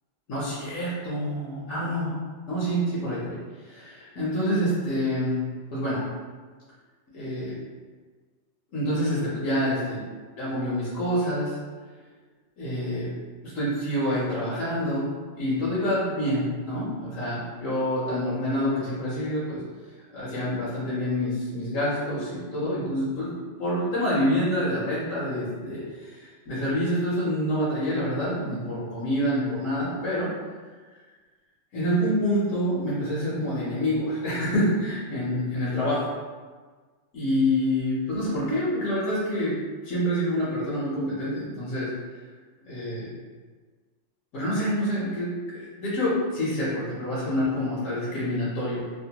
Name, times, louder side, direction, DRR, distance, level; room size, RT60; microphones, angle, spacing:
voice 1, 0.3-2.2 2.5-3.4 3.6-5.4 5.7-6.0 7.1-7.5 8.7-10.0 10.4-11.5 12.6-13.1 13.4-15.1 15.3-19.6 20.1-23.3 23.6-30.3 31.7-36.0 37.1-39.6 39.8-41.9 42.7-43.1 44.3-48.9, equal, 85° left, -9 dB, 1.2 m, -27 dB
3.0 x 2.1 x 2.8 m, 1.4 s
omnidirectional pair, 1.3 m